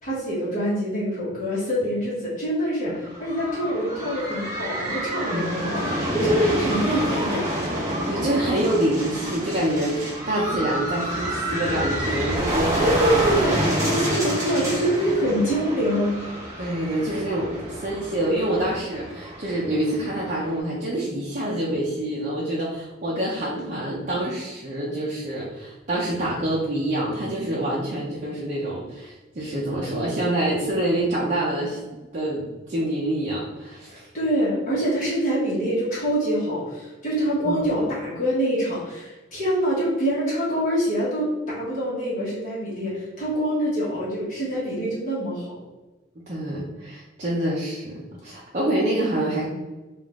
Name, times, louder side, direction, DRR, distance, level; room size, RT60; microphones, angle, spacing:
voice 1, 0.0-7.5 12.6-13.5 13.9-16.1 34.1-45.5, equal, 40° left, -9 dB, 1.4 m, -25 dB
sound 1, 2.9-20.6, equal, 15° right, 1.0 m, -28 dB
voice 2, 5.3-5.8 6.9-7.1 8.1-13.4 16.6-31.8 32.1-34.1 37.4-37.7 46.3-49.4, right 1 dB, 40° right, -6 dB, 0.6 m, -26 dB
3.6 x 2.5 x 3.6 m, 1.2 s
head